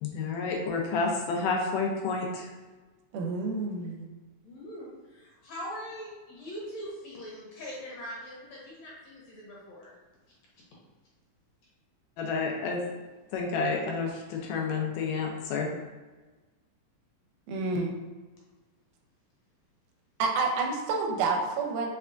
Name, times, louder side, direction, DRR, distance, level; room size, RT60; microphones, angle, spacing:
voice 1, 0.0-2.5 12.2-12.8 13.3-15.7, left 4 dB, 85° left, 1 dB, 2.2 m, -30 dB
voice 2, 3.1-4.1 17.5-17.9 20.2-21.9, right 3 dB, 80° right, 0 dB, 2.1 m, -29 dB
voice 3, 4.4-9.9, equal, 65° left, -5 dB, 2.0 m, -42 dB
5.3 x 3.4 x 2.5 m, 1.3 s
omnidirectional pair, 3.7 m